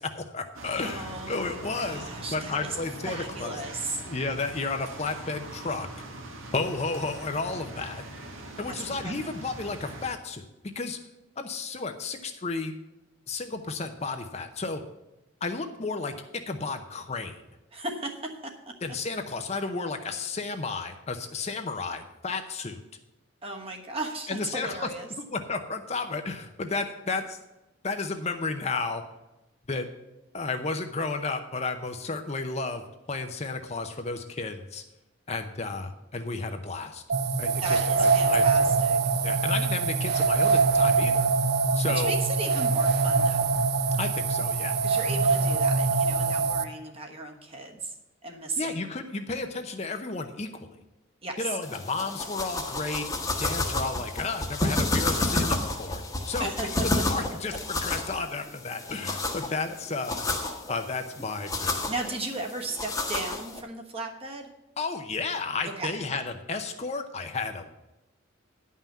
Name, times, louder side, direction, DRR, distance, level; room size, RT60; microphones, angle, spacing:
voice 1, 0.0-3.6 4.0-5.9 6.5-8.0 8.6-10.5 10.8-11.0 11.4-12.8 13.3-14.8 15.4-16.1 16.5-17.4 18.8-22.8 24.3-24.9 25.2-27.4 27.8-29.0 29.7-29.9 30.3-34.8 35.3-37.0 37.4-38.7 39.2-41.3 41.7-42.1 44.0-44.8 48.6-50.7 51.4-56.0 56.3-60.3 60.7-61.9 64.8-67.7, left 3 dB, 30° left, 7 dB, 0.7 m, -32 dB
sound 1, 0.5-10.1, right 1 dB, 85° right, 1.6 m, -42 dB
voice 2, 0.8-2.8 3.0-4.0 8.7-9.3 17.7-18.7 23.4-25.1 37.6-39.0 41.8-43.4 44.8-47.9 48.2-48.9 51.2-51.6 56.4-57.0 61.9-64.5 65.8-65.9, right 2 dB, 30° right, 2 dB, 1.2 m, -36 dB
sound 2, 37.1-46.6, right 4 dB, 50° right, 0.5 m, -23 dB
sound 3, 51.6-63.6, left 2 dB, 15° left, 1.1 m, -31 dB
10.5 x 5.6 x 7.3 m, 0.98 s
head